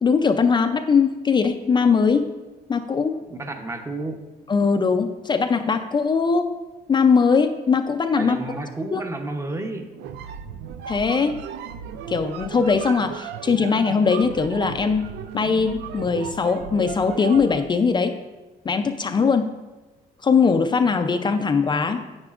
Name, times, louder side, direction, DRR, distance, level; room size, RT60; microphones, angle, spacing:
voice 1, 0.0-2.3 2.7-3.2 4.5-6.6 6.9-8.4 8.9-9.0 10.9-11.4 12.1-15.0 15.3-18.2 18.6-19.5 20.2-22.0, left 5 dB, 25° left, 7 dB, 0.5 m, -20 dB
voice 2, 3.3-4.3 8.1-9.9, right 2 dB, 15° right, 5 dB, 0.8 m, -31 dB
sound 1, 9.9-17.7, right 8 dB, 85° right, 0.4 m, -35 dB
9.8 x 8.9 x 2.5 m, 1.2 s
cardioid pair, 110°, 17 cm